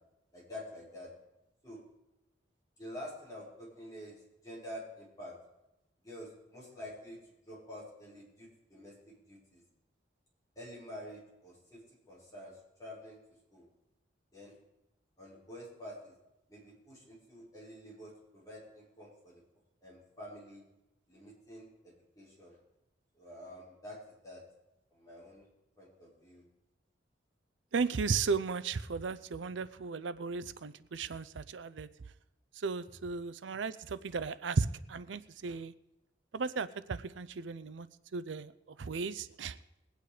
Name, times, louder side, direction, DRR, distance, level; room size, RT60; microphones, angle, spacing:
voice 1, 0.3-1.1 1.6-1.8 2.8-5.4 6.0-7.2 7.5-9.6 10.6-11.8 12.1-13.2 13.5-13.6 14.3-14.5 15.2-16.1 16.5-19.4 19.8-20.6 21.1-22.6 23.2-24.4 24.9-25.5 25.8-26.4, left 1 dB, 20° left, -6 dB, 5.2 m, -48 dB
voice 2, 27.7-31.9 32.6-35.7 36.3-37.9 38.1-39.6, right 4 dB, 85° right, 16 dB, 0.5 m, -35 dB
20.5 x 9.2 x 4.9 m, 0.92 s
head